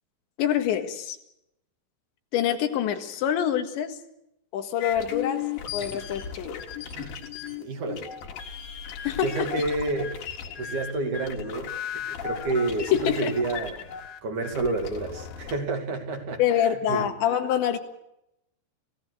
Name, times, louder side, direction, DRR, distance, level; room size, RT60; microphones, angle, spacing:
voice 1, 0.4-1.2 2.3-4.0 4.5-6.7 9.1-9.5 12.9-13.4 16.4-17.8, left 10 dB, 90° left, 6 dB, 4.0 m, -26 dB
sound 1, 4.8-15.6, left 8 dB, 60° left, 3.3 m, -36 dB
voice 2, 7.6-8.1 9.2-10.2 10.6-17.1, right 2 dB, 50° right, 5 dB, 3.6 m, -30 dB
28.5 x 17.0 x 6.5 m, 0.83 s
omnidirectional pair, 5.1 m